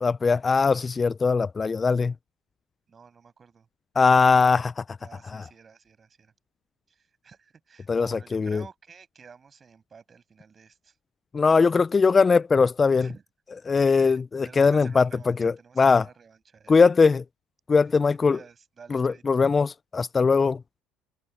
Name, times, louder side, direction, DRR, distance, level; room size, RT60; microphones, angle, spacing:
voice 1, 0.0-2.1 4.0-4.8 5.3-5.4 7.9-8.6 11.3-13.1 13.7-15.1 15.4-16.0 16.7-17.2 17.7-18.4 18.9-20.6, left 4 dB, 25° left, 0.3 m, -20 dB
voice 2, 2.9-3.7 5.0-6.3 6.9-11.0 13.0-13.2 14.0-16.7 18.1-19.4, right 6 dB, 30° right, 6.5 m, -51 dB
supercardioid pair, 95°, 0 cm